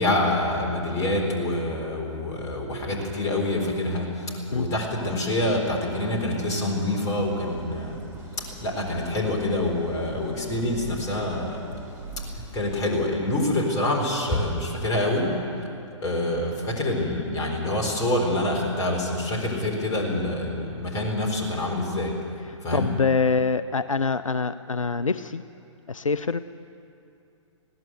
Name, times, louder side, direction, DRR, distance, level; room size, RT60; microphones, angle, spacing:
voice 1, 0.0-8.0 8.4-11.6 12.3-15.4 16.0-22.2 22.6-22.9, left 1 dB, 20° left, -1 dB, 4.1 m, -26 dB
Idling, 7.2-13.3, right 2 dB, 15° right, 4.1 m, -42 dB
voice 2, 22.4-25.4 25.9-26.4, left 4 dB, 85° left, 14 dB, 0.5 m, -25 dB
20.5 x 16.5 x 8.0 m, 2.6 s
figure-of-eight pair, 120°, 16 cm